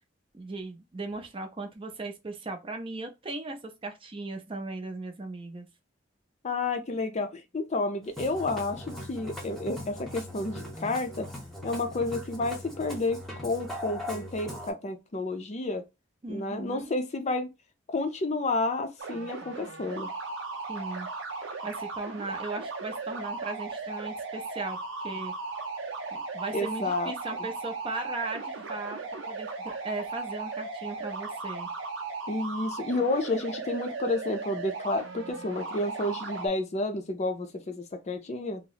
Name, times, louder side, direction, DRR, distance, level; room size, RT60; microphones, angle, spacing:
voice 1, 0.3-5.7 16.2-16.9 20.7-21.1 21.6-25.3 26.1-29.0 29.3-31.7, right 3 dB, 25° right, 0.5 m, -37 dB
voice 2, 6.4-11.3 11.6-15.8 16.3-17.5 17.9-20.1 26.5-27.1 32.3-38.6, left 2 dB, 35° left, 0.5 m, -30 dB
Musical instrument, 8.0-14.7, left 1 dB, ahead, 0.8 m, -40 dB
sound 1, 19.0-36.5, right 4 dB, 75° right, 0.6 m, -37 dB
2.8 x 2.0 x 3.9 m
head